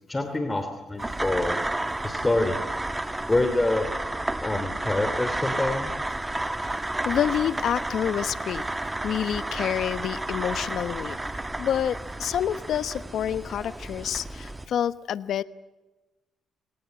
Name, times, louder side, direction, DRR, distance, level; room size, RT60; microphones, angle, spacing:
voice 1, 0.1-1.6 2.0-2.6 3.3-3.9 4.4-5.9, left 2 dB, 15° left, 7 dB, 2.8 m, -26 dB
sound 1, 1.0-14.7, right 2 dB, 15° right, 1.7 m, -31 dB
voice 2, 7.0-8.6 9.0-15.4, left 9 dB, 70° left, 15 dB, 1.0 m, -28 dB
28.5 x 19.0 x 9.0 m, 1.1 s
cardioid pair, 90°, 0 cm